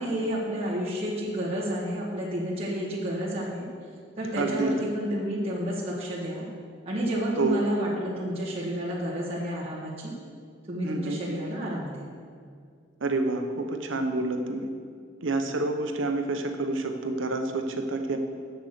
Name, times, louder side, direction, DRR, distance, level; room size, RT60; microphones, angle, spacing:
voice 1, 0.0-3.6 4.2-6.4 6.9-10.1 10.7-12.1, equal, 30° right, -8 dB, 1.7 m, -30 dB
voice 2, 4.4-4.7 7.4-7.6 10.8-11.2 13.0-14.7 15.2-18.2, right 2 dB, 70° right, 6 dB, 0.8 m, -28 dB
7.7 x 6.8 x 6.5 m, 2.2 s
head